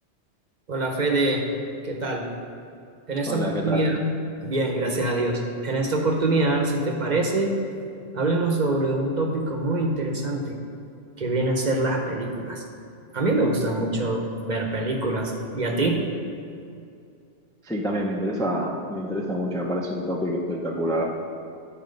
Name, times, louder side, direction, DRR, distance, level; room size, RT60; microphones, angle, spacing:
voice 1, 0.7-1.4 1.8-2.3 3.1-4.1 4.4-7.5 8.1-10.5 11.2-12.6 13.1-16.0, right 2 dB, 45° right, 2 dB, 0.9 m, -24 dB
voice 2, 3.3-3.9 17.6-21.1, equal, 5° left, 0 dB, 0.4 m, -27 dB
10.5 x 4.3 x 5.2 m, 2.5 s
omnidirectional pair, 1.1 m